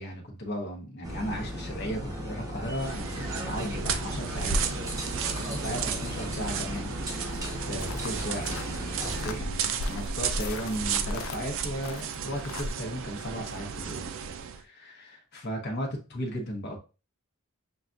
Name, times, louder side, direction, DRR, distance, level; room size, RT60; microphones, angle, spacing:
voice 1, 0.0-4.8 5.3-14.1 14.5-16.8, equal, 50° left, 1 dB, 0.9 m, -36 dB
sound 1, 1.0-9.3, equal, 15° right, 0.9 m, -36 dB
sound 2, 2.7-14.6, right 7 dB, 60° right, 0.4 m, -34 dB
sound 3, 7.3-12.7, left 2 dB, 65° left, 0.4 m, -38 dB
6.3 x 2.3 x 2.5 m, 0.31 s
head